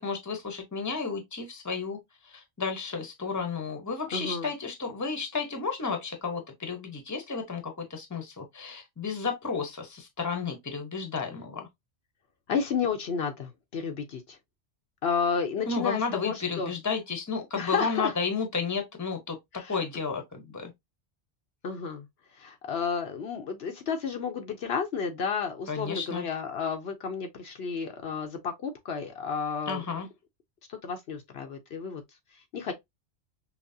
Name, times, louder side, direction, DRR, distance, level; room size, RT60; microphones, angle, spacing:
voice 1, 0.0-2.0 2.2-11.7 15.7-19.4 19.7-20.7 25.7-26.2 29.7-30.1, left 5 dB, 15° left, 0.8 m, -32 dB
voice 2, 4.1-4.5 12.5-14.4 15.0-16.7 17.5-18.1 19.5-19.8 21.6-22.1 22.3-29.8 30.7-32.0 32.5-32.7, left 6 dB, 65° left, 0.9 m, -31 dB
5.7 x 2.1 x 2.7 m
omnidirectional pair, 1.1 m